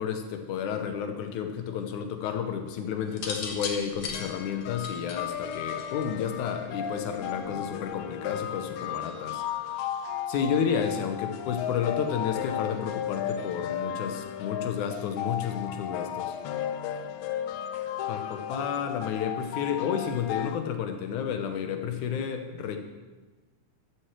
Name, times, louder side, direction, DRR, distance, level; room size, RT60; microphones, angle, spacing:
voice 1, 0.0-9.8 10.3-16.4 18.1-22.8, left 7 dB, 75° left, 6 dB, 2.3 m, -31 dB
sound 1, 3.1-6.2 7.3-7.7, left 5 dB, 55° left, 2.0 m, -36 dB
sound 2, 4.1-20.6, left 9 dB, 90° left, 2.4 m, -35 dB
13.0 x 6.2 x 7.5 m, 1.2 s
omnidirectional pair, 3.8 m